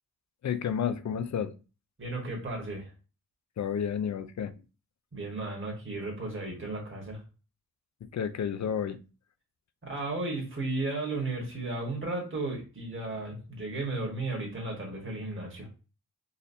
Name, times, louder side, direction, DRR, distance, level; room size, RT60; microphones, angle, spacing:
voice 1, 0.4-1.5 3.6-4.5 8.1-9.0, left 8 dB, 50° left, 0.5 m, -31 dB
voice 2, 2.0-2.9 5.1-7.2 9.8-15.7, right 2 dB, 35° right, 1.5 m, -34 dB
4.0 x 2.5 x 2.7 m
cardioid pair, 50°, 37 cm